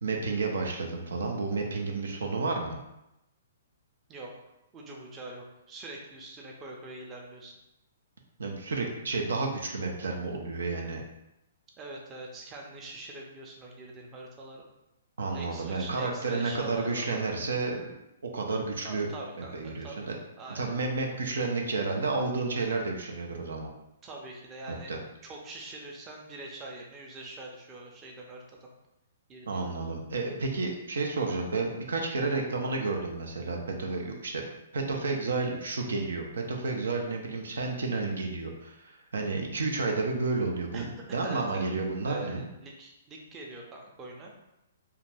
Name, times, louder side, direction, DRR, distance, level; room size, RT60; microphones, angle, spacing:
voice 1, 0.0-2.8 8.4-11.0 15.2-17.9 18.2-19.1 19.4-20.1 20.5-23.7 24.7-25.0 29.5-34.4 34.7-42.5, right 3 dB, 80° right, 2 dB, 0.5 m, -31 dB
voice 2, 4.1-7.6 11.8-14.6 15.3-17.2 18.8-20.1 20.4-20.7 24.0-25.0 25.2-28.7 29.3-29.6 40.7-41.6 42.0-44.3, right 2 dB, 20° right, -1 dB, 0.5 m, -44 dB
2.4 x 2.2 x 3.3 m, 0.88 s
hypercardioid pair, 135°, 0 cm